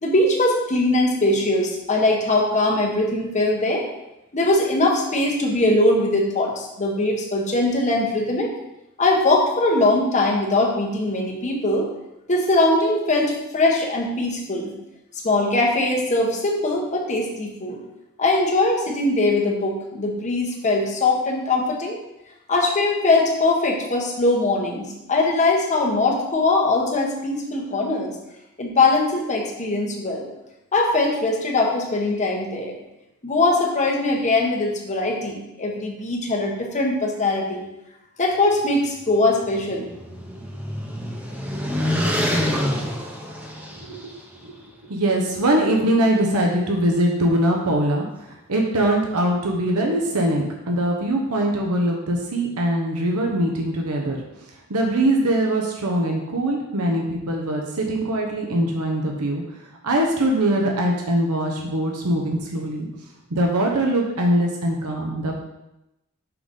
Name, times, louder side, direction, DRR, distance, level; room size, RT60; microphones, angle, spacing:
voice 1, 0.0-3.9 4.3-8.5 9.0-11.9 12.3-14.7 15.2-17.8 18.2-22.0 22.5-28.1 28.6-30.3 30.7-32.7 33.2-37.6 38.2-39.9, left 2 dB, 35° left, -1 dB, 1.1 m, -21 dB
sound 1, 39.4-44.1, equal, 5° right, 0.9 m, -26 dB
voice 2, 43.8-44.6 44.8-54.2 54.7-59.4 59.8-62.9 63.3-65.4, right 1 dB, 90° right, 0 dB, 1.0 m, -22 dB
5.7 x 4.0 x 5.2 m, 0.91 s
head